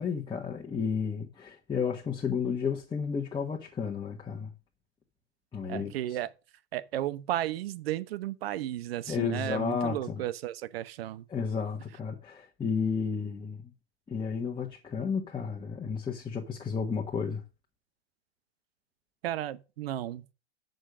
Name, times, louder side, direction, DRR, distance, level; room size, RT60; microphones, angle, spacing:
voice 1, 0.0-4.5 5.5-5.9 9.1-10.2 11.3-13.7 14.1-17.4, left 6 dB, 15° left, 1.3 m, -32 dB
voice 2, 5.7-6.3 6.7-11.2 19.2-20.3, right 13 dB, 65° right, 0.9 m, -34 dB
7.8 x 6.5 x 5.2 m
hypercardioid pair, 105°, 32 cm